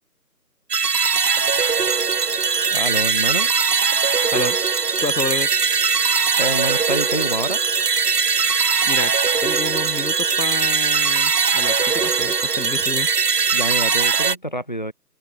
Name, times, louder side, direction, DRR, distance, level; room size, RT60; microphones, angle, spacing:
sound 1, 0.7-14.4, right 5 dB, 70° right, 1.0 m, -20 dB
voice 1, 2.7-3.5 6.4-7.6 13.5-14.9, equal, 30° left, 1.0 m, -27 dB
voice 2, 5.0-5.5 8.8-9.1 9.4-13.1, left 3 dB, 90° left, 2.9 m, -29 dB
open air
figure-of-eight pair, 175°, 49 cm